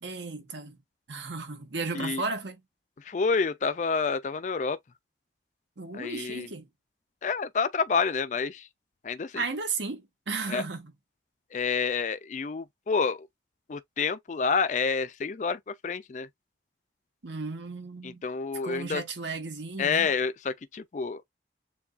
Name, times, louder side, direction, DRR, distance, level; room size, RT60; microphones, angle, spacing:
voice 1, 0.0-0.8 1.1-2.6 5.8-6.7 9.3-10.9 17.2-18.2 18.6-20.1, right 4 dB, 90° right, 1.3 m, -34 dB
voice 2, 3.0-4.8 5.9-6.5 7.2-8.7 9.0-9.4 10.5-10.6 11.5-13.3 13.7-16.3 18.0-19.0 19.8-21.2, left 5 dB, 40° left, 0.4 m, -28 dB
7.0 x 2.4 x 2.4 m
head